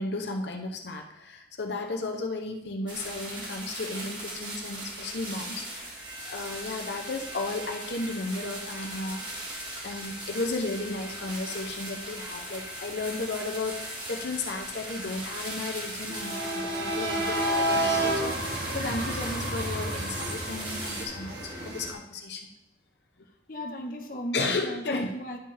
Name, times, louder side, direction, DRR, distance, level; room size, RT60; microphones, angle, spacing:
voice 1, 0.0-5.9 6.3-9.3 9.8-21.4 21.6-22.5 24.3-25.1, left 3 dB, 80° left, 3 dB, 0.8 m, -34 dB
sound 1, 2.9-21.0, right 1 dB, 25° right, 1.6 m, -39 dB
sound 2, 6.0-21.9, right 1 dB, 80° right, 1.6 m, -34 dB
voice 2, 23.5-25.4, equal, 50° left, 3 dB, 0.9 m, -36 dB
10.5 x 5.5 x 3.4 m, 0.92 s
head